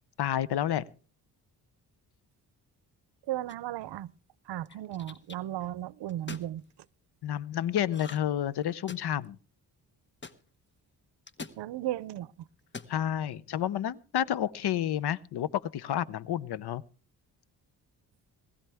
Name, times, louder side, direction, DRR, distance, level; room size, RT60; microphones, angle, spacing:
voice 1, 0.2-0.9 7.2-9.4 12.9-16.8, left 10 dB, 70° left, 0.8 m, -30 dB
voice 2, 3.3-4.1 4.5-6.6 11.6-12.3, right 13 dB, 80° right, 0.6 m, -35 dB
sound 1, 3.5-3.8 4.6-5.4 6.1-6.5 7.9-8.4 8.6-9.2 10.2-10.4 11.3-11.6 12.6-13.0, left 4 dB, 25° left, 1.1 m, -43 dB
20.0 x 15.0 x 3.5 m
cardioid pair, 75°, 40 cm